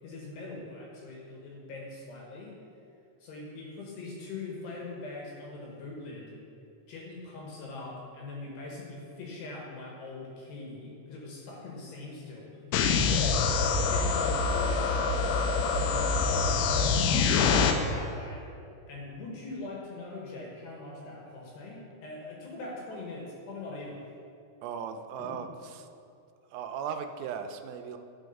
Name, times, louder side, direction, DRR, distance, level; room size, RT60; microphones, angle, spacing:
voice 1, 0.0-2.6 3.2-6.4 6.9-13.3 13.7-15.1 15.7-17.4 17.7-18.5 18.9-24.0 25.2-25.4, left 3 dB, 70° left, -2 dB, 2.8 m, -42 dB
sound 1, 12.7-17.7, left 5 dB, 90° left, 3.3 m, -25 dB
voice 2, 24.6-25.5 26.5-28.0, right 7 dB, 85° right, 7 dB, 3.1 m, -37 dB
12.5 x 4.7 x 5.2 m, 2.6 s
omnidirectional pair, 5.9 m